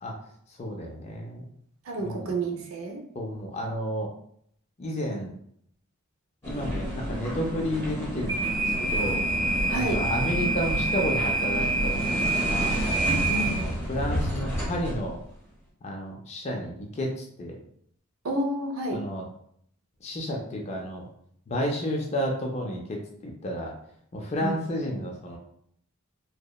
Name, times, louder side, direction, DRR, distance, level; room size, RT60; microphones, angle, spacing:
voice 1, 0.6-1.4 2.0-2.3 3.2-4.1 4.8-5.3 6.4-9.2 9.7-12.8 13.4-15.2 15.8-17.6 18.9-19.2 20.0-21.0 21.5-23.7 24.1-25.4, equal, 30° left, 0 dB, 0.3 m, -31 dB
voice 2, 1.9-3.0 9.7-10.0 13.3-13.6 18.2-19.0 24.4-24.6, right 1 dB, 65° right, 2 dB, 0.5 m, -30 dB
sound 1, 6.4-15.0, right 1 dB, 10° left, 0.8 m, -27 dB
2.8 x 2.1 x 2.2 m, 0.68 s
head